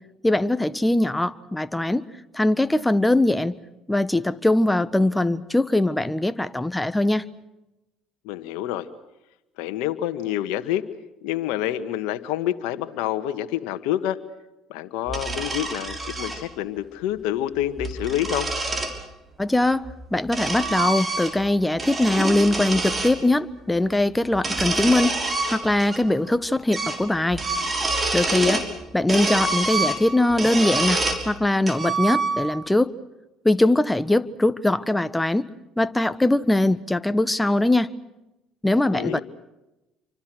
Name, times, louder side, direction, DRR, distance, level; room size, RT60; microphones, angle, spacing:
voice 1, 0.2-2.1 2.3-3.6 3.9-7.2 19.4-25.2 25.5-27.4 28.1-28.6 28.9-32.9 33.4-35.5 35.8-37.9 38.6-39.2, left 1 dB, 10° left, 14 dB, 1.4 m, -21 dB
voice 2, 8.2-8.9 9.6-10.8 11.2-14.2 14.7-18.5 28.3-28.7 38.9-39.2, left 12 dB, 75° left, 8 dB, 1.6 m, -27 dB
sound 1, 15.1-16.4 17.6-19.0 19.9-21.5 21.8-23.1 24.3-26.0 26.3-26.4 26.7-27.0 27.3-28.7 29.1-31.2 31.7-32.6, right 3 dB, 30° right, 5.9 m, -26 dB
28.5 x 25.0 x 6.4 m, 0.95 s
hypercardioid pair, 70°, 0 cm